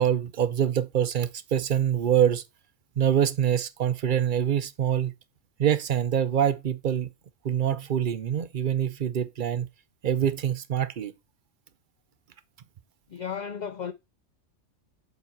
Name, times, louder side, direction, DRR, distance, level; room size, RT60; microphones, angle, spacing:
voice 1, 0.0-2.4 3.0-5.1 5.6-7.1 7.4-9.7 10.0-11.1, right 9 dB, 55° right, 0.6 m, -25 dB
voice 2, 13.1-13.9, left 7 dB, 70° left, 0.4 m, -34 dB
7.2 x 3.9 x 4.5 m
omnidirectional pair, 1.3 m